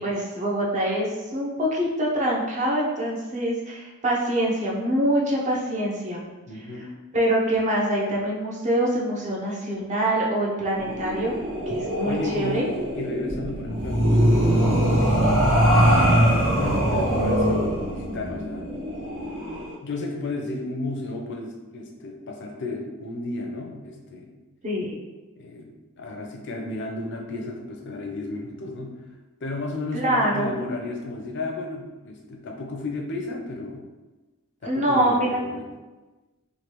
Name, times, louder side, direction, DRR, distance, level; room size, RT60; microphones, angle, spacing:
voice 1, 0.0-6.2 6.5-6.6 7.1-11.4 11.7-12.6 24.6-25.0 29.9-30.5 34.6-35.4, right 1 dB, 35° right, -3 dB, 0.6 m, -25 dB
voice 2, 6.5-6.9 12.0-15.4 16.6-18.9 19.8-24.3 25.4-29.0 29.4-33.9 34.6-35.7, left 2 dB, 55° left, 2 dB, 0.5 m, -33 dB
sound 1, 10.8-19.7, equal, 65° right, 1.0 m, -22 dB
3.1 x 2.3 x 2.9 m, 1.2 s
head